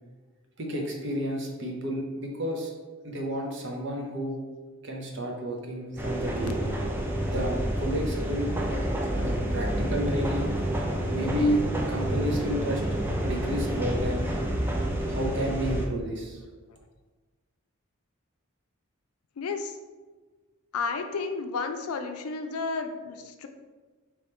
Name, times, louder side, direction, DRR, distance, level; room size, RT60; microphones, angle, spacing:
voice 1, 0.6-2.7 3.0-4.4 4.8-6.7 7.2-8.5 9.2-10.5 11.1-11.6 11.9-12.8 13.2-14.3 15.1-16.4, equal, 50° right, 1 dB, 0.7 m, -31 dB
sound 1, 6.0-15.9, right 1 dB, 10° right, 0.4 m, -29 dB
voice 2, 19.4-19.8 20.7-23.5, left 4 dB, 80° left, 6 dB, 0.4 m, -32 dB
3.5 x 3.0 x 4.3 m, 1.3 s
head